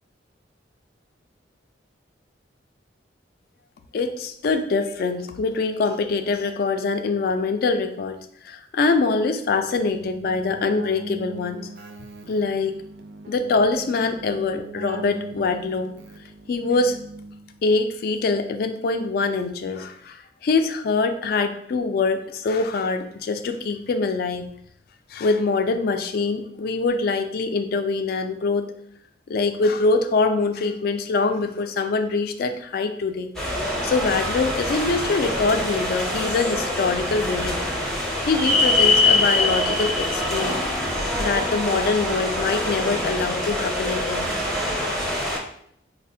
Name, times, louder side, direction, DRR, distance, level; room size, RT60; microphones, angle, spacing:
voice 1, 3.9-8.2 8.4-11.7 12.3-12.8 13.3-15.9 16.5-17.0 17.6-24.5 25.1-28.7 29.3-33.3 33.8-37.6 38.3-40.6 41.2-44.3 45.0-45.3, left 3 dB, 55° left, 8 dB, 0.3 m, -24 dB
Keyboard (musical), 9.8-17.7, right 2 dB, 65° right, 0.4 m, -40 dB
sound 1, 33.4-45.4, left 2 dB, 5° left, 0.5 m, -24 dB
3.9 x 2.1 x 2.6 m, 0.68 s
head